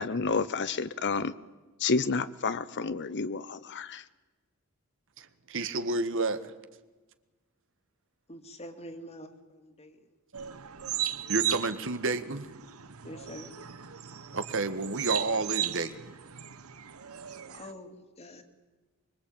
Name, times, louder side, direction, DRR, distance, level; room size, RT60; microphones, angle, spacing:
voice 1, 0.0-1.3 1.8-4.0, left 4 dB, 55° left, 14 dB, 0.8 m, -30 dB
voice 2, 5.2-6.5 11.3-12.5 14.3-16.1, right 3 dB, 65° right, 10 dB, 1.6 m, -30 dB
voice 3, 8.3-10.0 13.0-13.5 17.5-18.4, equal, 30° left, 7 dB, 2.6 m, -45 dB
sound 1, 10.3-17.7, right 11 dB, 80° right, 1.1 m, -36 dB
24.5 x 23.0 x 8.8 m, 1.2 s
head